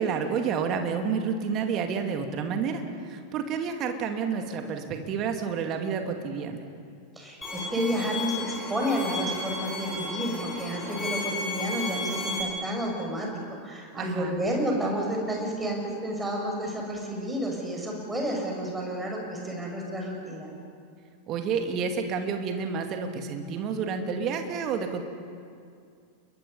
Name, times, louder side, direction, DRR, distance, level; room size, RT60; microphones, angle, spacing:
voice 1, 0.0-6.6 13.9-14.3 21.3-25.0, right 6 dB, 35° right, 5 dB, 2.4 m, -29 dB
voice 2, 7.2-13.3 13.6-20.5, equal, 10° right, 0 dB, 6.3 m, -30 dB
Bowed string instrument, 7.4-12.4, left 2 dB, 10° left, 7.6 m, -33 dB
30.0 x 22.0 x 5.5 m, 2.3 s
figure-of-eight pair, 90°, 0 cm